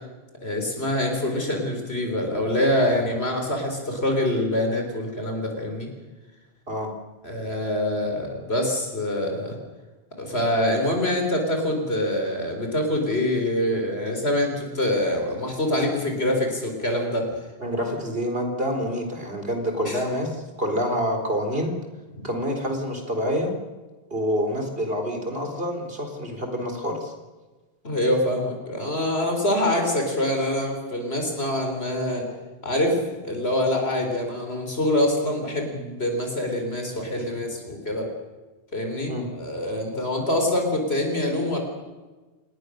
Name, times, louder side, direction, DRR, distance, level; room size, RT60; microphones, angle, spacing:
voice 1, 0.4-5.9 7.2-9.6 10.2-17.3 19.9-20.0 22.1-22.2 27.8-32.3 32.6-33.0 33.2-38.1 38.7-41.6, left 1 dB, 80° left, 3 dB, 4.7 m, -25 dB
voice 2, 17.6-21.7 22.2-23.5 24.1-27.1 39.1-39.3, equal, 65° right, 4 dB, 4.2 m, -27 dB
27.0 x 20.0 x 6.6 m, 1.2 s
omnidirectional pair, 1.1 m